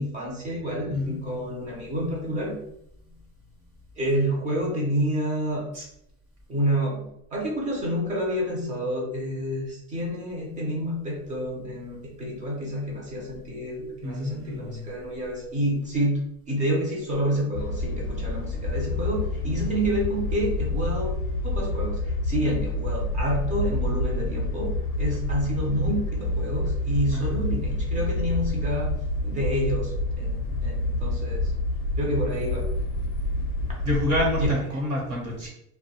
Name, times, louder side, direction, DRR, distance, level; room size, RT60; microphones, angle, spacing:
voice 1, 0.0-2.6 4.0-5.7 6.5-21.1 21.4-28.9 29.2-31.5 32.0-32.7 34.4-34.5, equal, 20° right, -3 dB, 0.5 m, -28 dB
voice 2, 14.0-14.9 27.1-27.4 33.8-35.5, left 1 dB, 35° right, -2 dB, 0.9 m, -28 dB
sound 1, 17.5-34.6, left 2 dB, 60° left, 0.6 m, -28 dB
2.2 x 2.1 x 2.8 m, 0.77 s
supercardioid pair, 145°, 42 cm